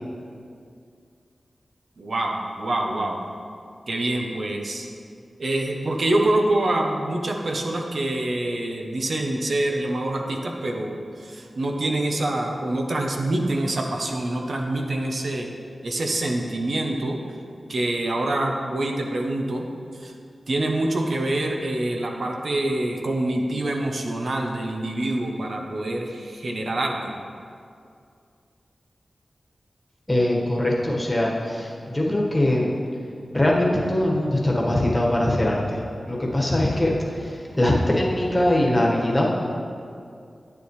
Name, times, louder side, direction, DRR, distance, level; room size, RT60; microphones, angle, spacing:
voice 1, 2.0-3.2 3.9-4.9 5.4-15.5 15.8-17.2 17.7-19.7 19.9-20.1 20.5-27.1, right 1 dB, 65° right, 2 dB, 0.9 m, -26 dB
voice 2, 30.1-32.7 33.3-35.8 36.0-36.9 37.2-39.6, left 1 dB, 15° left, -4 dB, 1.5 m, -22 dB
10.0 x 8.6 x 3.2 m, 2.4 s
wide cardioid pair, 110°, 0 cm